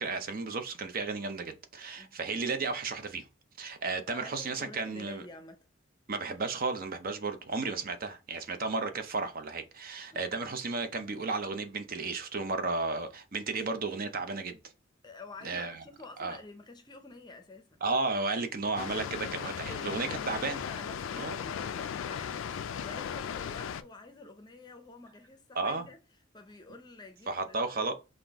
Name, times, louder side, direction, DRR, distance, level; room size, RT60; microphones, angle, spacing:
voice 1, 0.0-3.3 3.6-5.2 6.1-14.6 15.4-15.8 16.2-16.4 17.8-20.6 21.2-21.4 25.5-25.9 27.3-27.9, right 3 dB, 45° right, 0.6 m, -33 dB
voice 2, 4.1-5.6 10.1-10.2 15.0-17.8 19.6-26.0 26.3-27.9, left 3 dB, 20° left, 0.6 m, -49 dB
Water, 18.8-23.8, left 8 dB, 70° left, 0.3 m, -37 dB
5.8 x 2.6 x 3.5 m
head